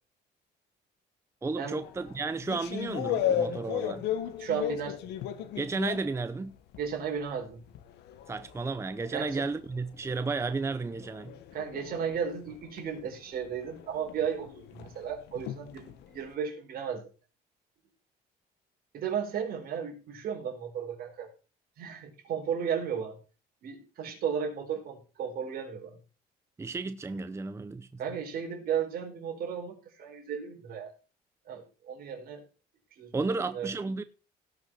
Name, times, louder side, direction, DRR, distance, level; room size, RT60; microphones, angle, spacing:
voice 1, 1.4-4.1 5.6-6.6 8.3-11.3 26.6-27.9 33.1-34.0, right 3 dB, 15° right, 0.7 m, -33 dB
sound 1, 1.8-7.0 7.3-16.3, left 9 dB, 85° left, 1.6 m, -36 dB
voice 2, 4.4-5.0 6.8-7.6 9.1-9.5 11.5-17.0 18.9-21.3 21.8-23.2 23.6-26.0 28.0-30.9 31.5-32.4 33.0-33.7, right 7 dB, 65° right, 4.6 m, -34 dB
17.5 x 6.3 x 4.6 m
cardioid pair, 110°, 17 cm